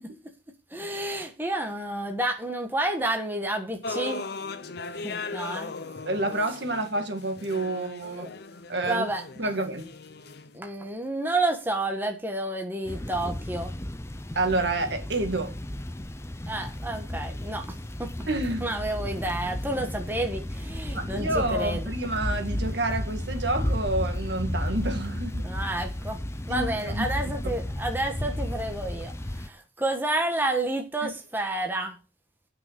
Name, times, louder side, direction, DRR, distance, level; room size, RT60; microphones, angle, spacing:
voice 1, 0.7-4.2 5.0-5.7 8.2-8.3 8.8-9.5 10.5-13.7 16.5-18.1 18.6-21.8 25.4-26.2 26.5-29.1 29.4-31.9, right 1 dB, 10° right, 1.3 m, -30 dB
sound 1, 3.8-10.6, left 3 dB, 55° left, 0.8 m, -38 dB
voice 2, 6.0-8.3 8.7-9.1 9.4-9.9 14.4-15.5 18.3-18.7 20.9-25.5 26.5-27.1 31.0-31.1, right 2 dB, 60° right, 1.9 m, -29 dB
sound 2, 12.9-29.5, left 1 dB, 15° left, 0.6 m, -33 dB
8.8 x 6.0 x 7.5 m
head